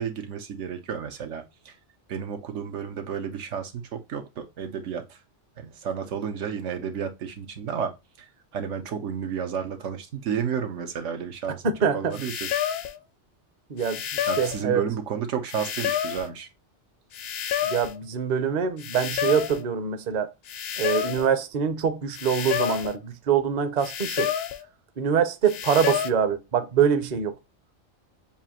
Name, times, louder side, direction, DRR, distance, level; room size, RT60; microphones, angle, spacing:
voice 1, 0.0-1.7 2.1-5.2 5.6-11.6 11.9-12.5 14.3-16.5, right 7 dB, 85° right, 1.1 m, -32 dB
voice 2, 11.6-12.2 13.7-14.8 17.6-20.3 20.8-24.3 25.0-27.3, right 7 dB, 45° right, 0.6 m, -24 dB
sound 1, 12.1-13.0 13.8-14.6 15.5-16.3 17.1-18.0 18.8-19.6 20.5-21.3 22.1-23.0 23.8-24.6 25.5-26.1, left 10 dB, 65° left, 0.7 m, -29 dB
7.0 x 2.5 x 2.8 m
omnidirectional pair, 1.2 m